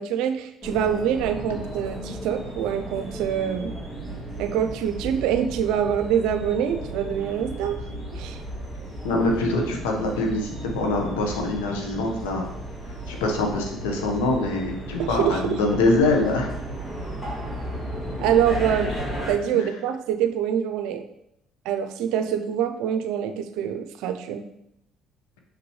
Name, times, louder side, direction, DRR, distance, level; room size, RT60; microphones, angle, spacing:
voice 1, 0.0-3.7 4.4-7.8 8.1-8.4 15.0-15.6 18.2-18.9 19.3-21.0 21.6-24.4, right 9 dB, 75° right, 8 dB, 0.5 m, -25 dB
sound 1, 0.6-19.3, right 1 dB, 35° left, 2.6 m, -34 dB
voice 2, 9.0-12.5 13.1-16.6 19.5-19.6, left 2 dB, 85° left, 2 dB, 1.2 m, -24 dB
5.9 x 5.9 x 3.2 m, 0.81 s
supercardioid pair, 70°, 0 cm